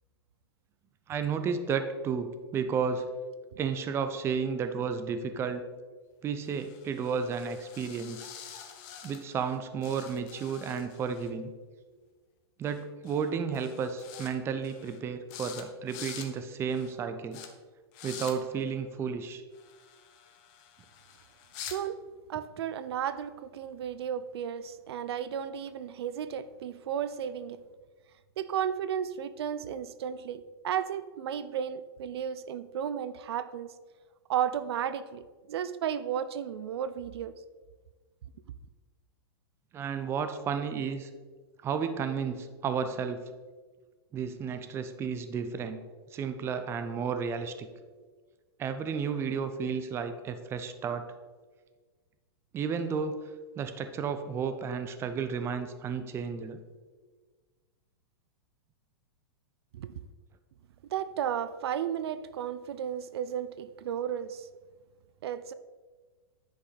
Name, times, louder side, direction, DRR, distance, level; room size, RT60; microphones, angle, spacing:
voice 1, 1.1-3.1 3.6-5.6 6.2-8.3 9.0-11.5 12.6-17.4 18.0-19.4 39.7-41.1 41.6-43.2 44.1-45.8 46.1-47.7 48.6-51.0 52.5-53.2 53.6-56.6, right 6 dB, 20° right, 9 dB, 0.6 m, -32 dB
sound 1, 6.4-9.6 9.8-11.3 12.7-12.8 13.1-13.3 13.5-14.3 14.6-15.0 15.3-15.6 15.9-16.3 16.7-16.9 17.3-17.5 17.9-18.3 19.5-21.8, left 9 dB, 40° left, 1.1 m, -47 dB
voice 2, 21.6-22.0 22.3-27.6 28.4-33.7 34.3-37.3 59.7-60.0 60.9-64.5 65.2-65.5, right 9 dB, 75° right, 14 dB, 0.5 m, -34 dB
9.9 x 5.2 x 4.1 m, 1.4 s
hypercardioid pair, 145°, 13 cm